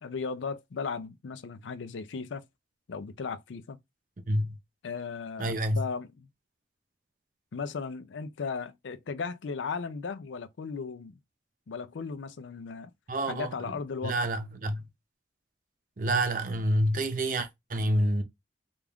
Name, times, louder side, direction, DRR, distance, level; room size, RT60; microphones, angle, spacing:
voice 1, 0.0-2.4 2.9-3.8 4.8-6.3 7.5-11.2 11.7-12.9 13.3-14.1, left 5 dB, 90° left, 0.5 m, -36 dB
voice 2, 4.3-4.6 5.4-5.9 13.1-13.8 14.0-14.8 16.0-18.2, right 1 dB, 45° right, 0.6 m, -28 dB
3.5 x 2.4 x 3.4 m
head